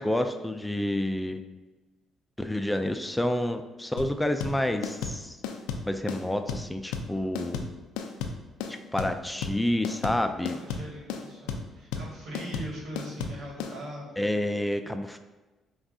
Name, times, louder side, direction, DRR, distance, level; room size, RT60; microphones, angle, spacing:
voice 1, 0.0-1.4 2.4-5.4 5.8-7.7 8.7-10.6 14.2-15.2, left 1 dB, 10° left, 8 dB, 0.3 m, -29 dB
sound 1, 4.0-13.7, left 6 dB, 90° left, 0.3 m, -34 dB
voice 2, 10.5-14.3, right 1 dB, 75° right, -4 dB, 1.5 m, -41 dB
5.8 x 2.3 x 2.6 m, 1.2 s
supercardioid pair, 60°, 0 cm